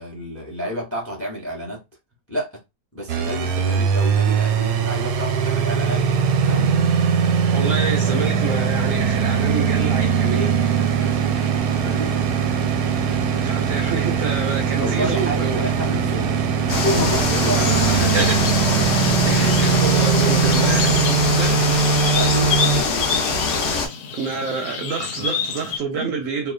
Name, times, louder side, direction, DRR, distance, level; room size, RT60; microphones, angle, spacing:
voice 1, 0.0-1.8 2.3-2.5 2.9-6.1 6.4-6.8 11.0-12.5 14.8-18.5 22.0-23.4 25.9-26.1, equal, 15° left, 0.5 m, -30 dB
sound 1, 3.1-22.8, right 6 dB, 90° right, 1.2 m, -20 dB
voice 2, 7.5-10.6 13.4-15.6 17.5-18.5 19.2-20.8 21.4-21.6 24.1-26.5, right 5 dB, 70° right, 0.8 m, -28 dB
sound 2, 16.7-23.9, left 4 dB, 60° left, 0.9 m, -23 dB
sound 3, 17.0-25.8, left 6 dB, 80° left, 1.2 m, -30 dB
2.8 x 2.2 x 2.4 m
omnidirectional pair, 1.7 m